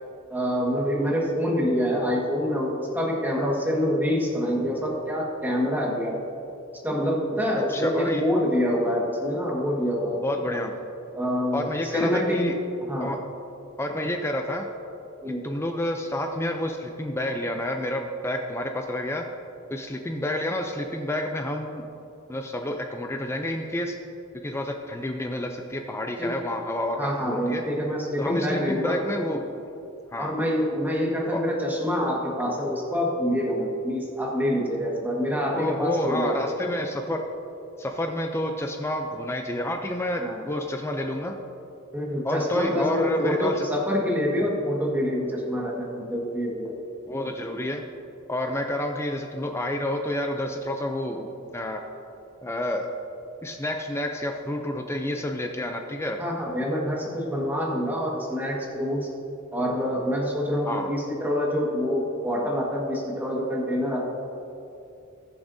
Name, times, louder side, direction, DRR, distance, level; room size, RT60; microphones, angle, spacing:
voice 1, 0.3-6.2 6.8-10.2 11.1-12.4 12.9-13.1 15.2-15.4 26.2-26.3 27.0-29.0 30.2-36.3 40.2-40.4 41.9-46.7 56.2-59.1 59.5-64.1, equal, 10° right, -3 dB, 1.6 m, -26 dB
voice 2, 7.7-8.2 10.2-10.7 11.5-12.6 13.0-13.2 13.8-14.7 15.4-19.2 19.7-21.8 22.3-24.0 24.4-27.6 28.2-29.5 30.1-30.3 31.3-31.4 35.5-37.2 37.8-41.4 42.2-43.7 47.1-47.8 48.3-51.8 52.4-52.9 53.4-56.2 60.6-60.9, left 1 dB, 10° left, 4 dB, 0.5 m, -29 dB
20.0 x 7.0 x 2.7 m, 2.8 s
head